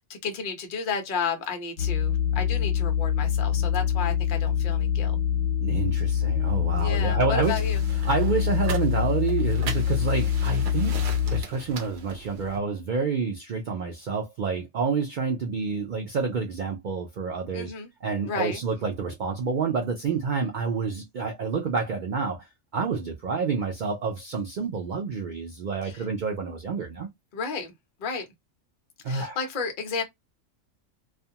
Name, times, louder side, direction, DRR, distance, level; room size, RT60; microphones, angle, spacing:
voice 1, 0.1-5.2 6.8-7.8 17.5-17.9 18.2-18.6 25.8-26.0 27.3-27.7 28.0-28.2 29.1-30.0, left 5 dB, 45° left, 0.8 m, -32 dB
sound 1, 1.8-11.4, left 8 dB, 80° left, 1.0 m, -25 dB
voice 2, 5.6-7.6 7.9-11.0 11.3-17.7 18.0-27.1 29.0-29.4, right 5 dB, 80° right, 0.4 m, -28 dB
sound 2, 7.4-12.6, right 5 dB, 60° right, 0.8 m, -40 dB
2.4 x 2.3 x 2.7 m
omnidirectional pair, 1.3 m